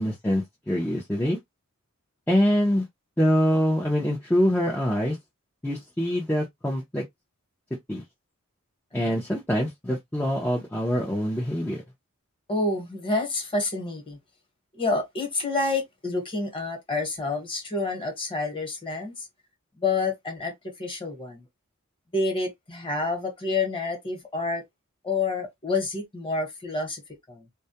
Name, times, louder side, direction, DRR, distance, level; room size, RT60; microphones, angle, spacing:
voice 1, 0.0-1.4 2.3-2.9 3.2-5.2 5.6-7.0 7.9-8.0 8.9-11.8, equal, 10° left, 0.5 m, -24 dB
voice 2, 12.5-14.2 14.7-19.3 19.8-21.4 22.1-24.6 25.0-27.0 27.3-27.5, left 3 dB, 25° left, 1.1 m, -28 dB
2.2 x 2.1 x 2.7 m
head